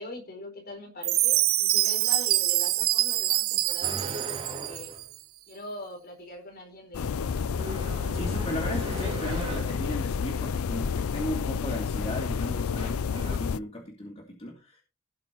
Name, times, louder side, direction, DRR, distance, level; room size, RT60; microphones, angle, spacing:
voice 1, 0.0-4.9 5.5-7.8, left 1 dB, 45° left, 4.5 m, -42 dB
Chime, 1.0-5.0, right 16 dB, 75° right, 0.8 m, -25 dB
sound 1, 3.8-5.1 7.5-9.9 12.0-12.3 12.7-13.4, right 2 dB, 25° right, 3.7 m, -39 dB
sound 2, 6.9-13.6, left 6 dB, 80° left, 0.4 m, -30 dB
voice 2, 7.8-14.8, equal, 30° left, 2.7 m, -36 dB
17.0 x 8.9 x 3.0 m
head